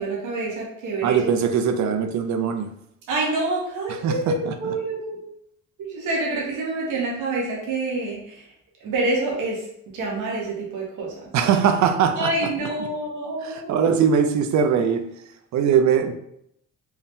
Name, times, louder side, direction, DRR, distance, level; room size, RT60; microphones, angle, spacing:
voice 1, 0.0-1.3 3.1-5.3 5.9-8.5 8.8-9.7 9.9-11.3 12.2-13.7, right 2 dB, 85° right, -3 dB, 1.3 m, -27 dB
voice 2, 1.0-2.7 4.0-4.5 11.3-12.3 13.4-15.1 15.5-16.1, right 7 dB, 70° right, 8 dB, 0.6 m, -21 dB
4.5 x 2.1 x 3.6 m, 0.75 s
cardioid pair, 90°, 30 cm